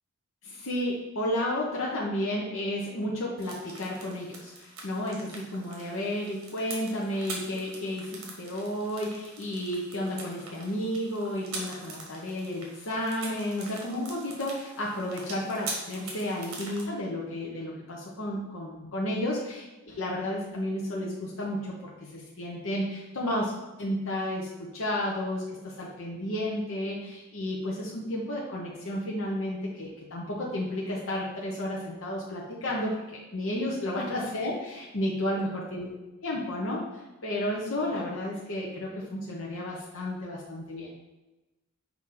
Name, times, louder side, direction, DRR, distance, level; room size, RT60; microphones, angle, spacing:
voice 1, 0.4-23.5 23.8-35.9 36.2-40.9, left 1 dB, 65° left, -4 dB, 1.0 m, -32 dB
sound 1, 3.4-16.8, right 3 dB, 70° right, 1.5 m, -43 dB
6.0 x 4.5 x 3.8 m, 1.1 s
head